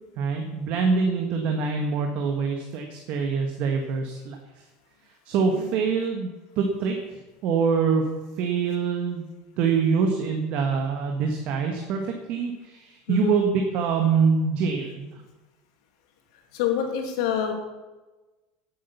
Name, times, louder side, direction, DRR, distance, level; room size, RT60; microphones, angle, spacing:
voice 1, 0.2-4.4 5.2-8.0 8.4-9.3 9.6-15.1, right 5 dB, 50° right, 3 dB, 1.5 m, -25 dB
voice 2, 16.5-17.5, left 9 dB, 80° left, 3 dB, 2.6 m, -27 dB
11.5 x 8.6 x 6.8 m, 1.2 s
cardioid pair, 150°, 3 cm